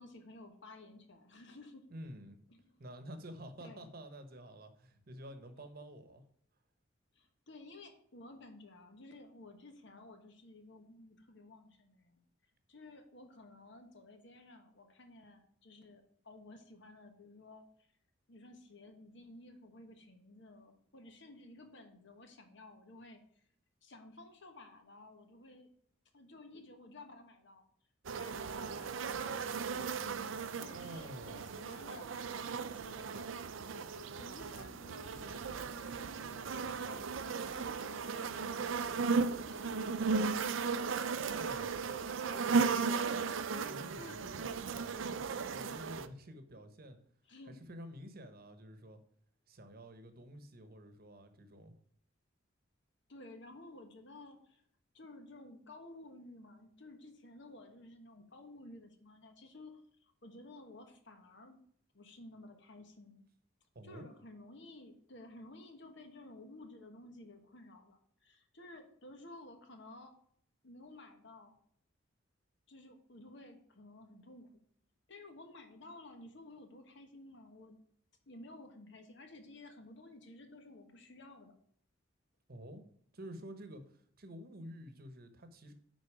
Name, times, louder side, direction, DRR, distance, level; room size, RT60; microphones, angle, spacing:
voice 1, 0.0-1.9 2.5-2.8 3.6-3.9 7.1-12.2 12.7-17.9 18.3-23.4 23.8-25.7 26.1-27.6 28.1-33.3 34.2-38.9 39.3-40.8 42.8-43.3 43.9-44.6 47.3-47.6 53.1-54.6 54.9-61.6 61.9-63.3 63.8-70.1 70.6-71.6 72.7-74.5 75.1-77.8 78.3-81.5, left 2 dB, 65° left, 1.3 m, -54 dB
voice 2, 1.9-2.4 2.8-6.2 30.7-31.5 41.3-41.8 43.6-47.0 47.5-49.0 49.5-51.7 63.7-64.1 82.5-82.8 83.1-85.7, equal, 50° right, 1.1 m, -50 dB
sound 1, 28.0-46.1, right 5 dB, 75° right, 0.5 m, -36 dB
9.8 x 4.0 x 4.9 m
head